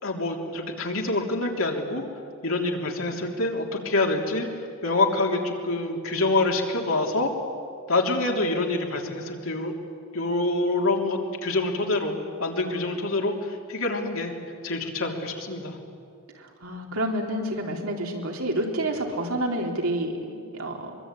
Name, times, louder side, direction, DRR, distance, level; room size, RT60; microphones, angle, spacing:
voice 1, 0.0-2.0 2.4-4.5 4.8-7.3 7.9-9.7 10.1-12.1 12.4-14.3 14.6-15.8, left 2 dB, 75° left, 1 dB, 3.4 m, -26 dB
voice 2, 16.3-20.9, right 1 dB, 85° right, 1 dB, 4.0 m, -29 dB
24.0 x 23.5 x 9.2 m, 2.3 s
head